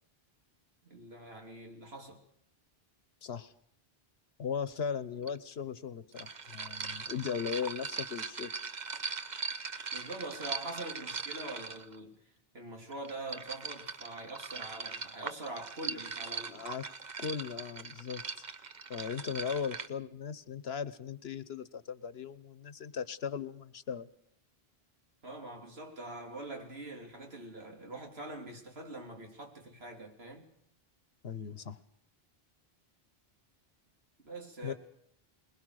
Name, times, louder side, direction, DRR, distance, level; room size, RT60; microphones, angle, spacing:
voice 1, 0.8-2.2 9.9-12.2 12.5-16.6 25.2-30.5 34.2-34.7, right 2 dB, 85° right, 3.3 m, -44 dB
voice 2, 3.2-3.5 4.4-8.5 16.5-16.9 17.2-18.4 18.9-24.1 31.2-31.8 34.6-34.7, left 7 dB, 80° left, 1.3 m, -38 dB
sound 1, 5.3-5.4 6.1-12.0 12.9-19.9, right 5 dB, 45° right, 1.1 m, -40 dB
21.5 x 21.5 x 6.5 m
omnidirectional pair, 1.0 m